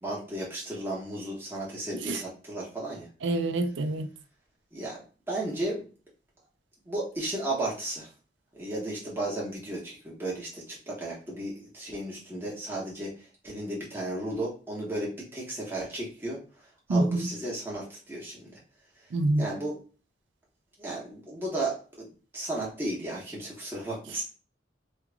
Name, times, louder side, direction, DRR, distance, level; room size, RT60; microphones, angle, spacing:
voice 1, 0.0-3.1 4.7-5.0 5.3-5.9 6.9-8.1 8.5-13.1 13.4-16.4 16.9-18.5 19.4-19.8 20.8-22.1 22.3-24.2, right 1 dB, 15° right, 1.3 m, -34 dB
voice 2, 3.2-4.1 16.9-17.3 19.1-19.5, right 2 dB, 85° right, 0.4 m, -26 dB
3.2 x 2.4 x 3.4 m
head